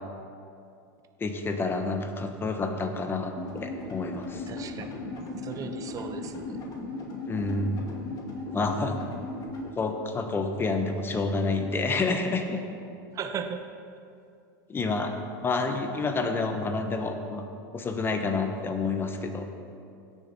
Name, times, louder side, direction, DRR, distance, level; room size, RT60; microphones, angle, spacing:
voice 1, 1.2-4.5 7.3-7.8 8.5-9.0 9.8-12.6 14.7-15.2 15.4-17.4 17.7-19.5, left 3 dB, 20° left, 6 dB, 1.0 m, -29 dB
sound 1, 3.4-9.7, left 3 dB, 35° left, 2.2 m, -37 dB
voice 2, 4.5-5.0 5.4-6.6 13.1-13.7, right 6 dB, 30° right, 7 dB, 0.8 m, -36 dB
16.5 x 6.8 x 4.2 m, 2.5 s
supercardioid pair, 120°, 11 cm